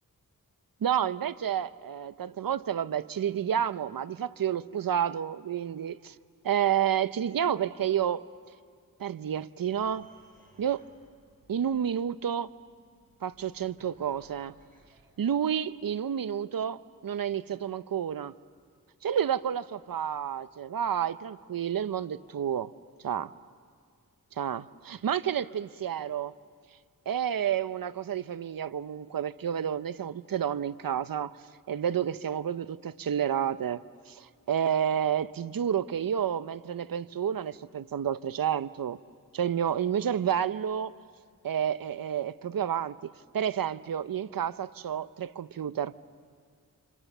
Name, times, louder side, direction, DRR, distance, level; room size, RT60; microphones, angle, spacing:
voice 1, 0.8-6.1 6.4-8.3 9.0-10.1 10.6-10.8 11.5-12.5 13.2-14.6 15.2-18.3 19.0-22.7 23.0-23.3 24.3-26.3 27.1-31.4 31.7-39.0 39.3-40.9 41.4-45.9, right 9 dB, 70° right, 0.7 m, -30 dB
sound 1, 9.7-15.0, right 2 dB, 25° right, 7.3 m, -62 dB
30.0 x 27.5 x 6.8 m
wide cardioid pair, 80°, 35 cm